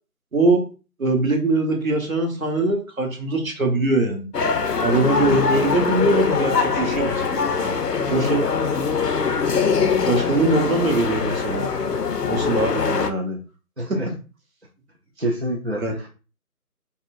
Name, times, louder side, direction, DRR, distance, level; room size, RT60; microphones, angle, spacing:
voice 1, 0.3-0.6 1.0-4.3 4.8-7.4 8.1-8.4 10.0-11.7 12.3-13.4 13.9-14.0 15.7-15.9, right 2 dB, 60° right, 3 dB, 1.2 m, -22 dB
sound 1, 4.3-13.1, left 5 dB, 90° left, 0.7 m, -22 dB
voice 2, 13.8-14.1 15.2-16.1, right 1 dB, 45° right, -1 dB, 0.5 m, -27 dB
5.4 x 2.3 x 2.5 m, 0.34 s
figure-of-eight pair, 165°, 46 cm